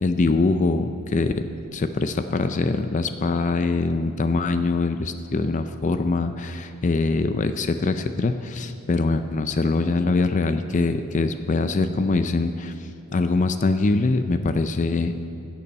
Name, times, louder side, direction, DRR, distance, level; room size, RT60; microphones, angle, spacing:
voice 1, 0.0-12.7 13.1-15.1, left 3 dB, 35° left, 9 dB, 0.4 m, -23 dB
13.5 x 6.9 x 8.7 m, 2.6 s
head